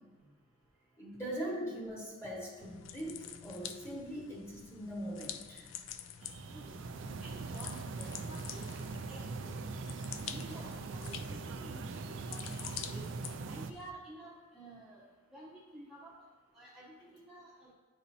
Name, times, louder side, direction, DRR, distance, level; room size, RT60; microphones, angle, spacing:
voice 1, 1.0-5.7 6.5-6.6 12.2-12.3, equal, 15° left, -4 dB, 1.5 m, -41 dB
sound 1, 2.6-13.9, left 9 dB, 70° left, 0.4 m, -48 dB
sound 2, 6.2-13.7, right 3 dB, 65° right, 0.4 m, -41 dB
voice 2, 7.2-8.7 9.0-9.5 10.2-13.0 13.4-15.1 15.3-16.2 16.5-17.7, right 1 dB, ahead, -8 dB, 0.9 m, -52 dB
10.0 x 4.2 x 2.7 m, 1.3 s
head